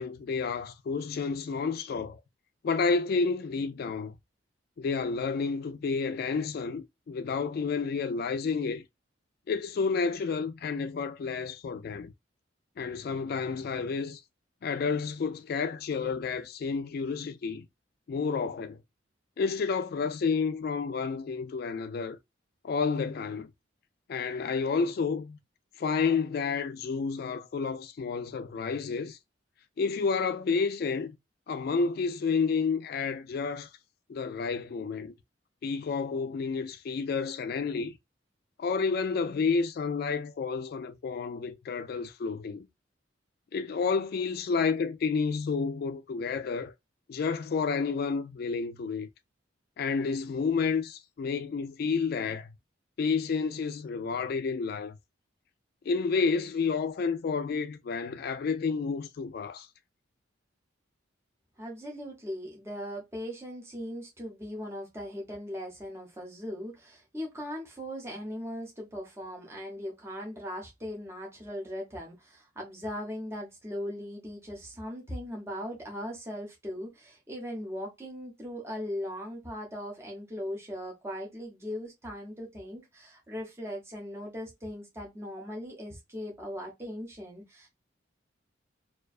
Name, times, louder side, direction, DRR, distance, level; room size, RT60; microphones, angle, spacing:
voice 1, 0.0-2.2 2.6-4.2 4.8-8.8 9.5-12.1 12.8-14.2 14.6-17.7 18.1-18.8 19.4-22.2 22.6-23.5 24.1-25.4 25.8-29.2 29.8-31.2 31.5-33.7 34.1-35.1 35.6-38.0 38.6-42.7 43.5-46.7 47.1-49.1 49.8-52.5 53.0-55.0 55.9-59.7, left 5 dB, 55° left, 0.3 m, -30 dB
voice 2, 61.6-87.7, equal, 15° right, 0.7 m, -39 dB
2.4 x 2.2 x 2.3 m
head